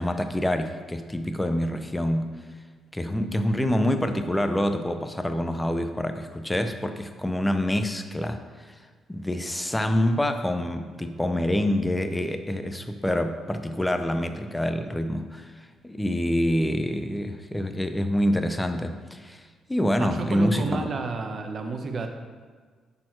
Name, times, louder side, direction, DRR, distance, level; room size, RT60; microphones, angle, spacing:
voice 1, 0.0-2.3 2.9-8.7 9.1-15.5 15.8-19.4 19.7-20.9, left 1 dB, 10° left, 7 dB, 0.6 m, -26 dB
voice 2, 20.0-22.1, right 3 dB, 45° right, 5 dB, 1.0 m, -30 dB
10.5 x 4.3 x 4.5 m, 1.5 s
cardioid pair, 90°, 0 cm